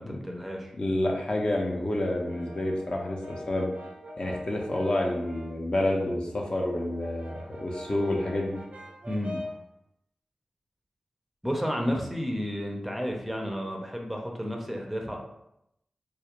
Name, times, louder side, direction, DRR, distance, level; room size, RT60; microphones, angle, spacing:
voice 1, 0.0-0.7 9.0-9.4 11.4-15.2, equal, 5° right, 0 dB, 0.4 m, -31 dB
voice 2, 0.8-3.7 4.2-8.6, left 1 dB, 45° left, 0 dB, 0.5 m, -29 dB
Brass instrument, 2.0-5.7 6.1-9.7, left 1 dB, 70° right, 0.4 m, -44 dB
2.3 x 2.1 x 2.8 m, 0.81 s
cardioid pair, 50°, 2 cm